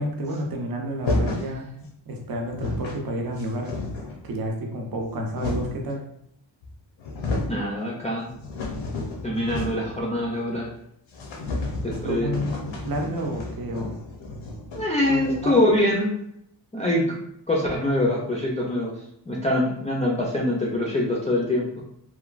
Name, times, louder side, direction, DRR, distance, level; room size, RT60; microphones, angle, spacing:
voice 1, 0.0-1.7 2.1-3.7 4.2-6.0 11.5-13.9 15.1-15.6, right 1 dB, 50° right, 1 dB, 0.6 m, -30 dB
sound 1, 1.0-1.5 2.2-2.3 2.4-3.0 3.4-4.2 4.9-5.9 6.6-6.7 7.0-7.6 8.0-10.0 10.2-10.3 10.6-10.7 11.1-15.6, left 2 dB, 90° left, 0.7 m, -31 dB
voice 2, 7.5-8.3 9.2-10.7 11.8-12.3 14.7-16.1 16.7-17.2 17.5-18.9 19.3-21.7, left 1 dB, 15° left, -4 dB, 0.3 m, -24 dB
3.1 x 2.2 x 2.4 m, 0.74 s
wide cardioid pair, 155°, 45 cm